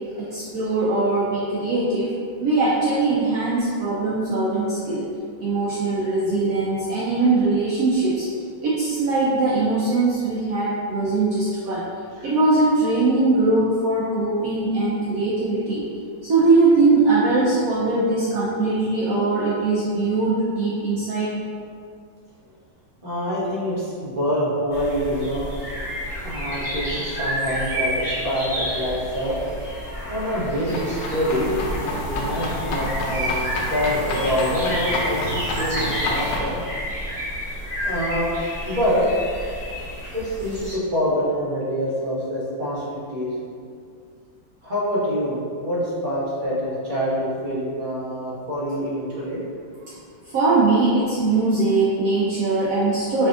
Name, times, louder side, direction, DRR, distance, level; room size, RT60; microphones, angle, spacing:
voice 1, 0.2-2.1 2.4-5.0 5.4-8.3 8.6-11.8 12.2-15.8 16.2-21.3 49.9-50.0 50.3-53.3, right 3 dB, 75° right, -7 dB, 0.8 m, -21 dB
voice 2, 23.0-25.5 26.2-29.4 30.1-36.6 37.8-38.3 38.7-39.0 40.1-43.3 44.6-49.4, equal, 35° right, -8 dB, 0.9 m, -26 dB
sound 1, 24.7-40.7, equal, 25° left, 1.6 m, -30 dB
sound 2, 30.7-36.4, left 2 dB, 70° left, 1.0 m, -29 dB
5.0 x 3.5 x 2.4 m, 2.3 s
omnidirectional pair, 2.2 m